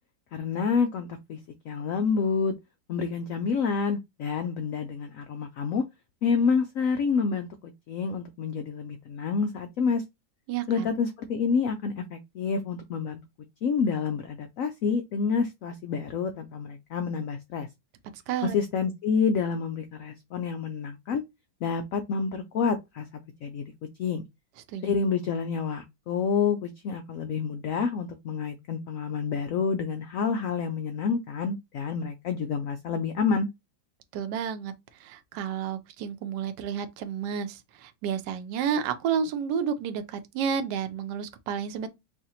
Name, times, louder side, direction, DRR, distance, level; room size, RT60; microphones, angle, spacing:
voice 1, 0.3-1.4 1.7-2.5 2.9-5.8 6.2-7.5 7.9-10.0 10.7-13.2 13.6-17.7 18.4-21.2 21.6-23.1 23.4-23.6 24.0-24.2 24.8-33.5, left 5 dB, 75° left, 0.7 m, -28 dB
voice 2, 10.5-10.9 18.1-18.6 24.7-25.0 34.1-34.7 35.0-41.9, right 7 dB, 70° right, 1.2 m, -31 dB
4.7 x 2.5 x 2.8 m
omnidirectional pair, 2.0 m